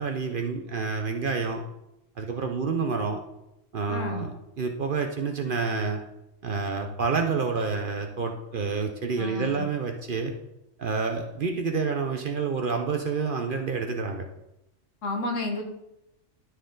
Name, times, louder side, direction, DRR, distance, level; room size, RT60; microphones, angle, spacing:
voice 1, 0.0-1.6 2.2-3.2 3.7-4.3 4.6-6.0 6.4-10.3 10.8-14.3, right 4 dB, 50° right, 4 dB, 0.7 m, -28 dB
voice 2, 3.9-4.3 9.2-9.7 15.0-15.6, left 2 dB, 75° left, 3 dB, 1.6 m, -31 dB
12.5 x 4.5 x 3.8 m, 0.89 s
omnidirectional pair, 1.3 m